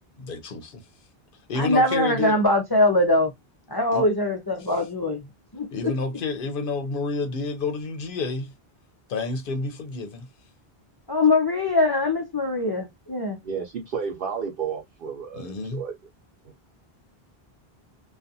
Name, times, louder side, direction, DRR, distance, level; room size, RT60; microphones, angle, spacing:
voice 1, 0.2-0.8 1.5-2.3 3.9-4.1 5.7-8.5 9.1-10.3 15.3-15.8, left 3 dB, 60° left, 0.8 m, -29 dB
voice 2, 1.6-3.3 3.7-5.2 5.5-5.9 11.1-13.4, left 2 dB, 35° left, 0.4 m, -22 dB
voice 3, 13.4-15.9, right 6 dB, 65° right, 0.8 m, -32 dB
2.4 x 2.3 x 2.6 m
omnidirectional pair, 1.0 m